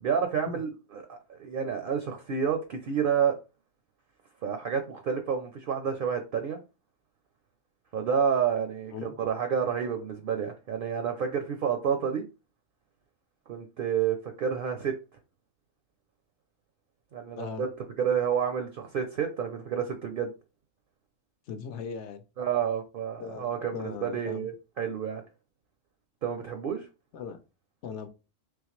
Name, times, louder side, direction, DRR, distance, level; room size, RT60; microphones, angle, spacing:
voice 1, 0.0-3.4 4.4-6.6 7.9-12.2 13.5-14.9 17.1-17.7 18.0-20.3 22.4-25.2 26.2-26.9, right 7 dB, 60° right, 0.6 m, -29 dB
voice 2, 21.5-22.2 23.2-24.5 27.1-27.4 27.8-28.1, left 6 dB, 70° left, 0.9 m, -38 dB
3.7 x 3.1 x 3.0 m
omnidirectional pair, 1.3 m